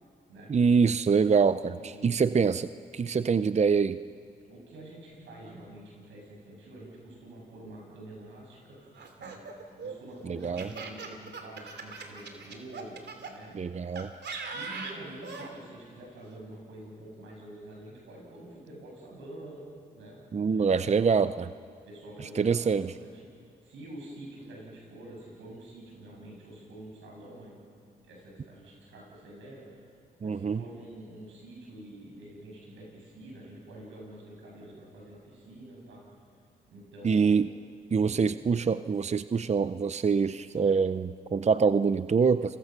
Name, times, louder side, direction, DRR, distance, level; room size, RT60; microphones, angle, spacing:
voice 1, 0.5-2.7 2.9-4.0 10.3-10.7 13.5-14.1 20.3-21.3 22.4-22.9 30.2-30.6 37.0-37.5 37.9-42.6, right 5 dB, 35° right, 13 dB, 0.6 m, -25 dB
voice 2, 1.7-2.4 3.1-3.5 4.5-8.8 9.2-9.4 9.8-13.0 13.2-13.8 14.3-20.2 20.5-21.3 21.9-23.2 23.6-27.6 28.0-29.8 30.2-36.0 36.7-37.5 38.0-38.2, right 1 dB, 85° right, -2 dB, 7.1 m, -47 dB
Laughter, 8.9-13.3 14.0-15.5, right 4 dB, 65° right, 2.8 m, -40 dB
29.5 x 22.0 x 6.1 m, 2.3 s
supercardioid pair, 50°, 19 cm